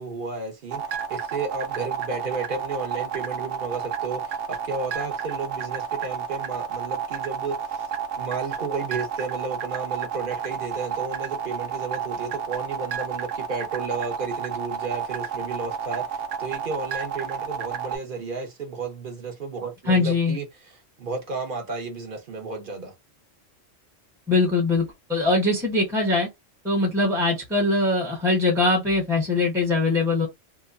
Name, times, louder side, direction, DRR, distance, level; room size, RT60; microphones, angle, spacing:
voice 1, 0.0-7.9 8.2-22.9, right 4 dB, 50° right, 0.8 m, -33 dB
sound 1, 0.7-18.0, right 8 dB, 80° right, 0.9 m, -30 dB
voice 2, 19.9-20.4 24.3-26.3 26.6-30.3, left 2 dB, 5° right, 0.7 m, -22 dB
2.8 x 2.1 x 2.4 m
omnidirectional pair, 1.3 m